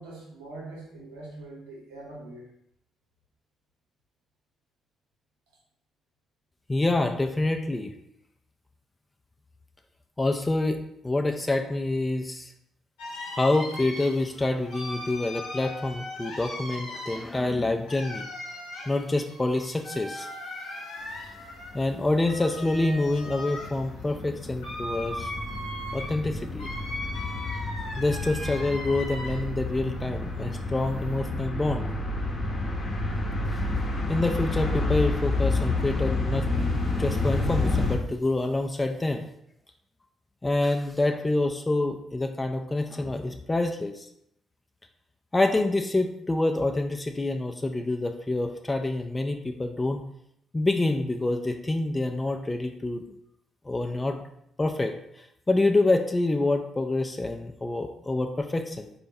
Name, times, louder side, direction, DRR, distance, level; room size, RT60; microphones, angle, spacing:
voice 1, 0.0-2.5, right 2 dB, 85° right, -3 dB, 0.9 m, -43 dB
voice 2, 6.7-7.9 10.2-12.5 13.3-18.3 18.8-20.3 21.7-25.3 25.9-26.7 28.0-31.9 34.1-36.5 36.8-39.3 40.4-44.1 45.3-50.0 50.5-53.0 53.7-54.2 54.6-58.9, left 2 dB, 20° left, 5 dB, 0.3 m, -27 dB
sound 1, 13.0-29.6 30.0-31.1, left 1 dB, 80° left, 0.8 m, -39 dB
sound 2, 21.1-21.2 21.6-38.0, left 2 dB, 40° left, 0.7 m, -30 dB
4.1 x 2.2 x 3.4 m, 0.74 s
hypercardioid pair, 45°, 0 cm